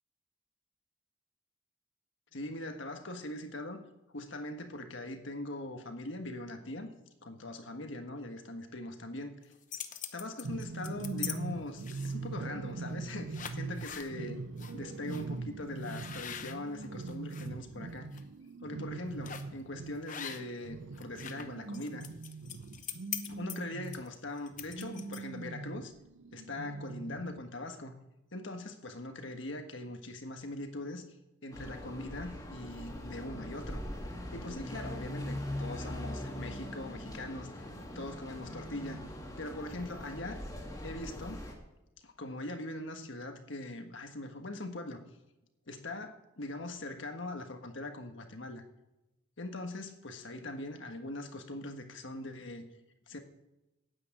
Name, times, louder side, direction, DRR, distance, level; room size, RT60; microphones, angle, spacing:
voice 1, 2.3-3.8 4.1-6.9 7.2-9.4 10.1-14.4 14.7-18.2 18.6-22.1 23.2-25.9 26.3-27.9 28.3-31.0 31.4-33.8 34.3-39.0 39.4-40.4 40.8-41.4 42.0-45.0 45.7-48.6 49.4-52.7 53.1-53.2, left 1 dB, 65° left, 6 dB, 1.4 m, -41 dB
sound 1, 9.4-11.4 11.8-12.3 12.9-13.0 13.3-14.1 14.6-14.7 15.1-15.2 15.8-17.5 17.9-18.2 19.2-19.6 20.1-20.7 20.9-25.4, left 9 dB, 40° left, 0.8 m, -43 dB
sound 2, 10.4-24.1 24.5-27.4, right 3 dB, 65° right, 0.6 m, -42 dB
sound 3, 31.5-41.5, left 1 dB, 20° left, 2.0 m, -41 dB
9.6 x 8.7 x 8.6 m, 0.95 s
head